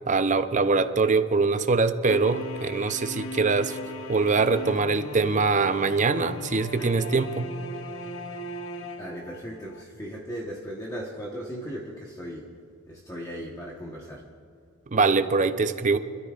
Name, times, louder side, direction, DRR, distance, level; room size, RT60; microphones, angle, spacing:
voice 1, 0.1-3.8 4.1-7.5 14.9-16.0, right 4 dB, 35° right, 9 dB, 0.6 m, -23 dB
sound 1, 2.1-9.8, left 1 dB, 65° left, 0.7 m, -38 dB
voice 2, 9.0-12.5 12.9-14.2, equal, 15° left, -3 dB, 1.2 m, -37 dB
26.0 x 13.5 x 2.5 m, 2.6 s
head